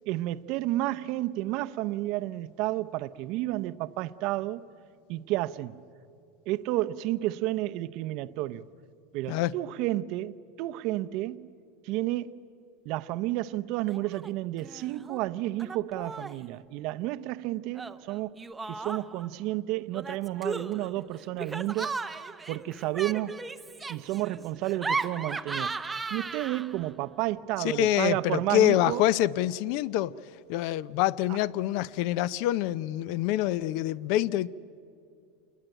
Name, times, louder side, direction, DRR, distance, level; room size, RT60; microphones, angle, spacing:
voice 1, 0.1-4.6 5.1-5.8 6.5-8.6 9.1-11.5 11.8-12.3 12.9-18.4 18.7-22.0 22.5-23.5 23.9-29.0, right 16 dB, 45° right, 0.6 m, -31 dB
Laughter, 13.9-14.3 14.6-15.2 15.6-16.4 17.7-19.3 19.9-26.9, right 4 dB, 10° right, 0.6 m, -36 dB
voice 2, 27.6-30.1 30.5-34.5, left 13 dB, 50° left, 0.5 m, -26 dB
27.5 x 21.0 x 9.0 m
supercardioid pair, 160°, 0 cm